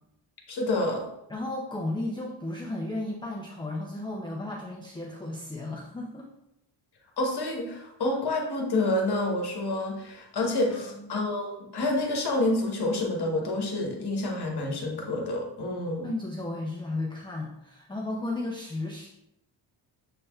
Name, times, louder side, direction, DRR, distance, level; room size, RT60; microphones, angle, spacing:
voice 1, 0.5-1.1 7.2-16.1, left 2 dB, 55° left, 1 dB, 1.1 m, -28 dB
voice 2, 1.3-6.3 10.4-11.1 16.0-19.1, left 2 dB, 10° left, -3 dB, 0.4 m, -34 dB
6.6 x 3.3 x 2.3 m, 0.85 s
wide cardioid pair, 125°, 48 cm